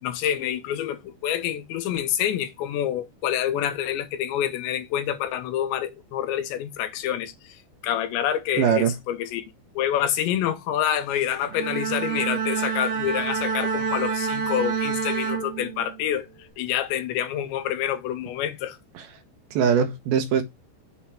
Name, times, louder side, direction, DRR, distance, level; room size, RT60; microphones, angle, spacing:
voice 1, 0.0-7.6 7.8-9.4 9.8-16.3 16.6-18.8, left 10 dB, 90° left, 3.2 m, -27 dB
voice 2, 8.6-8.9 19.0-19.1 19.5-20.4, right 7 dB, 75° right, 2.6 m, -21 dB
Bowed string instrument, 11.4-16.1, right 6 dB, 50° right, 2.4 m, -28 dB
7.2 x 3.5 x 5.8 m
omnidirectional pair, 5.0 m